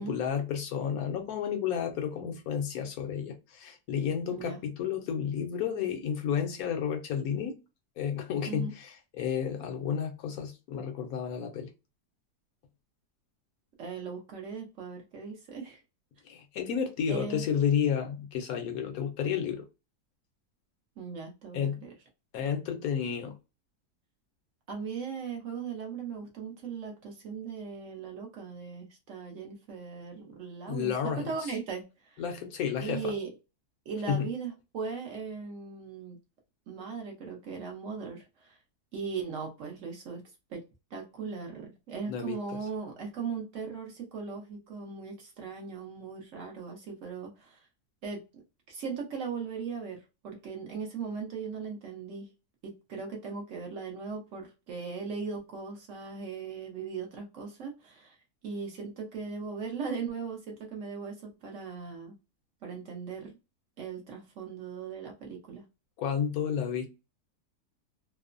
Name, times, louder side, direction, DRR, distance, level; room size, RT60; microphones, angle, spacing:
voice 1, 0.0-7.6 8.0-11.7 16.3-19.6 21.5-21.8 22.3-23.3 30.7-31.5 32.2-33.1 34.1-34.3 42.1-42.4 66.0-66.9, left 8 dB, 70° left, 1.0 m, -31 dB
voice 2, 4.3-4.6 8.5-8.7 13.8-15.8 17.1-17.5 21.0-21.9 24.7-32.2 32.8-33.3 33.9-36.2 36.7-38.6 38.9-40.2 40.5-40.6 40.9-47.7 48.0-48.4 48.7-52.3 52.6-58.2 58.4-62.1 62.6-63.4 63.8-65.6, right 5 dB, 60° right, 0.9 m, -38 dB
3.0 x 2.0 x 2.4 m
omnidirectional pair, 1.7 m